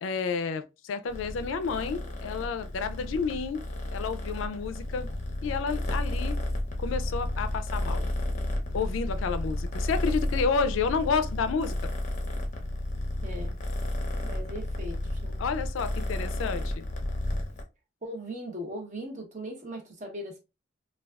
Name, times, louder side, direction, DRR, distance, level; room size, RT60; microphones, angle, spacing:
voice 1, 0.0-3.6 3.9-5.1 5.4-6.4 6.8-8.1 8.7-11.8 15.4-16.9, left 5 dB, 90° left, 0.4 m, -30 dB
Purr, 1.1-17.6, left 1 dB, 40° left, 0.6 m, -32 dB
voice 2, 13.2-13.6 14.2-15.4 18.0-20.4, equal, 40° right, 0.8 m, -39 dB
3.3 x 2.3 x 2.3 m
head